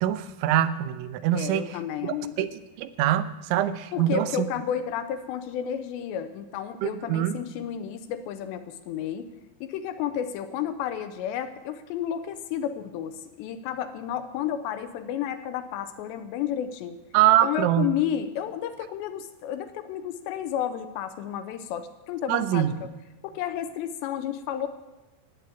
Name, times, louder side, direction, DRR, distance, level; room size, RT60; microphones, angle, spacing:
voice 1, 0.0-1.8 2.0-4.5 6.8-7.4 17.1-17.9 22.3-22.7, right 12 dB, 85° right, 11 dB, 3.1 m, -24 dB
voice 2, 1.3-2.5 3.9-9.3 9.6-17.0 17.4-22.9 23.2-24.7, left 9 dB, 80° left, 9 dB, 2.8 m, -32 dB
14.0 x 8.4 x 9.1 m, 1.1 s
omnidirectional pair, 5.4 m